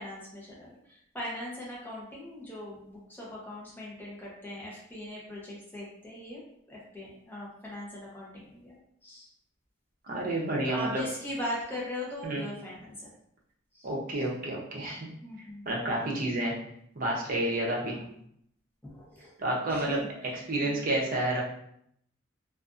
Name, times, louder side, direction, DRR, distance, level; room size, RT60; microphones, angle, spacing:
voice 1, 0.0-6.4 6.7-8.8 9.0-9.3 10.6-13.1 13.7-13.9 15.2-15.8 17.8-18.2 18.8-19.3 19.7-20.9, left 1 dB, 10° left, -5 dB, 0.7 m, -40 dB
voice 2, 10.1-11.0 12.2-12.4 13.8-15.1 15.7-16.5 17.0-18.0 19.4-20.0 20.5-21.4, right 1 dB, 45° right, -2 dB, 0.6 m, -29 dB
2.5 x 2.4 x 2.4 m, 0.71 s
head